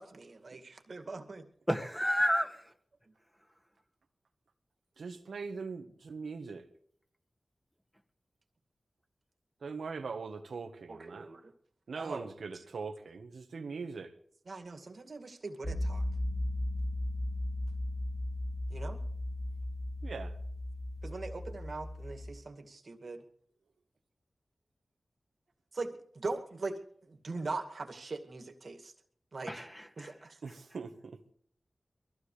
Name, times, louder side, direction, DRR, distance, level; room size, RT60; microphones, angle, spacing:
voice 1, 0.0-1.5 2.2-2.4 10.9-11.5 12.0-12.6 14.5-16.0 18.7-19.0 21.0-23.2 25.7-28.9 29.3-29.7 30.0-30.4, right 3 dB, 70° right, 2.2 m, -41 dB
voice 2, 1.7-2.5 29.5-30.1, equal, 5° left, 2.1 m, -30 dB
voice 3, 5.0-6.6 9.6-11.3 11.9-14.1 20.0-20.3 30.4-31.2, right 4 dB, 90° right, 1.4 m, -41 dB
sound 1, 15.6-22.3, left 1 dB, 30° left, 3.0 m, -36 dB
22.5 x 15.5 x 3.4 m
cardioid pair, 45°, 0 cm